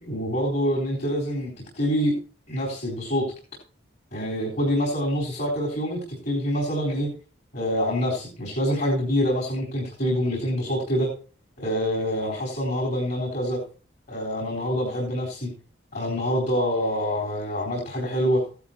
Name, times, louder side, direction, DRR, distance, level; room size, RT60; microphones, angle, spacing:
voice 1, 0.0-2.1 2.5-3.3 4.1-7.1 7.5-11.1 11.6-13.6 14.1-15.5 15.9-18.4, equal, 50° left, -4 dB, 4.1 m, -26 dB
15.5 x 11.5 x 2.9 m, 0.37 s
head